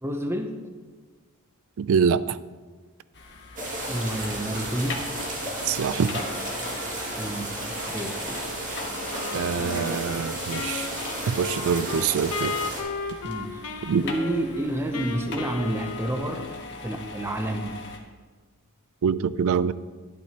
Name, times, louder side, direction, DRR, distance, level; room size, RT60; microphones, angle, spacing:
voice 1, 0.0-0.6 3.9-5.1 7.2-8.4 13.2-13.6 14.0-16.5 16.8-17.8, right 1 dB, 10° right, 5 dB, 0.7 m, -29 dB
voice 2, 1.8-2.4 5.7-6.2 9.3-10.9 11.3-12.5 13.8-14.1 19.0-19.7, right 6 dB, 65° right, 17 dB, 0.3 m, -25 dB
sound 1, 3.1-18.0, left 3 dB, 55° left, 1.3 m, -41 dB
sound 2, 3.6-12.8, right 1 dB, 35° right, 2.1 m, -33 dB
Wind instrument woodwind instrument, 9.1-16.8, left 4 dB, 85° left, 0.9 m, -35 dB
12.0 x 10.5 x 2.9 m, 1.4 s
head